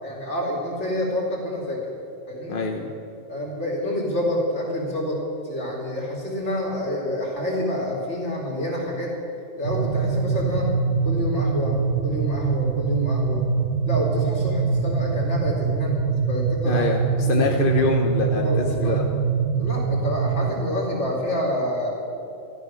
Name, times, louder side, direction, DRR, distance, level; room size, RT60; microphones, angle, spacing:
voice 1, 0.0-1.8 2.3-2.6 3.3-9.1 9.6-10.7 11.0-11.8 12.0-13.4 13.9-16.9 17.2-17.8 18.4-18.9 19.6-21.9, left 1 dB, 65° left, -3 dB, 3.6 m, -28 dB
voice 2, 2.5-2.9 16.6-19.1, left 3 dB, 45° left, 1 dB, 1.1 m, -25 dB
sound 1, 9.6-20.5, right 5 dB, 75° right, 1.3 m, -24 dB
13.5 x 13.0 x 6.3 m, 2.8 s
omnidirectional pair, 1.3 m